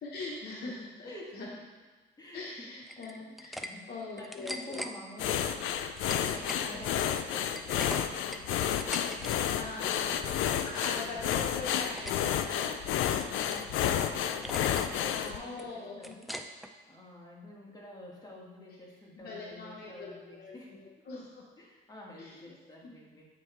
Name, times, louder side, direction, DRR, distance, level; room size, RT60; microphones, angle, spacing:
voice 1, 0.0-1.5 2.3-4.8 6.5-7.0 8.5-8.7 9.5-12.7 15.2-16.2 19.1-21.4 22.2-22.4 22.8-22.9, left 3 dB, 55° left, -3 dB, 1.0 m, -42 dB
voice 2, 1.0-1.5 2.2-2.7 3.0-3.9 4.1-5.8 6.3-8.7 10.9-11.8 13.3-14.6 15.0-16.3 16.9-20.8 21.6-23.3, left 1 dB, 20° left, -2 dB, 1.6 m, -49 dB
sound 1, 2.9-3.7 4.0-4.9 5.6-6.6 7.0-9.4 9.6-10.0 10.3-11.0 11.3-12.2 12.6-13.7 14.0-14.1 14.4-14.9 15.2-16.7, equal, ahead, 0.4 m, -42 dB
sound 2, 5.2-15.4, left 9 dB, 90° left, 0.4 m, -31 dB
8.5 x 3.2 x 4.6 m, 1.3 s
cardioid pair, 90°, 20 cm